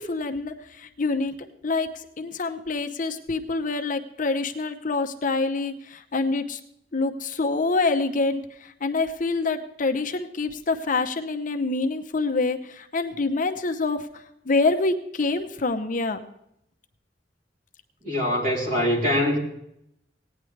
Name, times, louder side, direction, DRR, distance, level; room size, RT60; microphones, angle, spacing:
voice 1, 0.0-6.6 6.9-16.2, left 3 dB, 50° left, 7 dB, 0.7 m, -26 dB
voice 2, 18.0-19.4, left 1 dB, 50° right, -2 dB, 3.3 m, -23 dB
17.0 x 9.7 x 3.3 m, 0.76 s
head